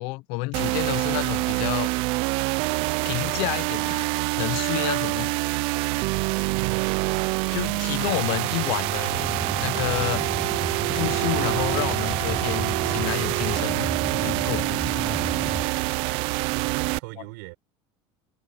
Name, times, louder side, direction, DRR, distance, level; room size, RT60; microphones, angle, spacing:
voice 1, 0.0-1.9 3.0-4.1 4.4-5.3 7.5-9.3 9.6-10.3 10.9-13.9 14.2-14.7, left 23 dB, 65° left, 0.8 m, -29 dB
sound 1, 0.5-17.0, right 23 dB, 60° right, 0.6 m, -26 dB
voice 2, 6.5-7.3 11.8-12.1 16.5-17.6, right 25 dB, 80° right, 4.4 m, -39 dB
sound 2, 6.9-16.1, left 15 dB, 45° left, 4.5 m, -55 dB
sound 3, 9.1-15.7, left 3 dB, 5° left, 0.5 m, -34 dB
cardioid pair, 150°, 11 cm